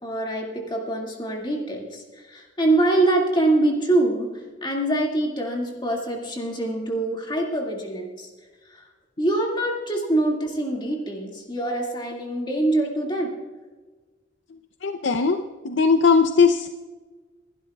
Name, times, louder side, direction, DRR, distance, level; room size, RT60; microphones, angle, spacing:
voice 1, 0.0-8.3 8.7-8.9 9.2-13.3, right 2 dB, 25° left, -1 dB, 2.1 m, -24 dB
voice 2, 14.8-16.7, left 5 dB, 75° left, 7 dB, 0.6 m, -19 dB
27.0 x 12.0 x 2.3 m, 1.3 s
head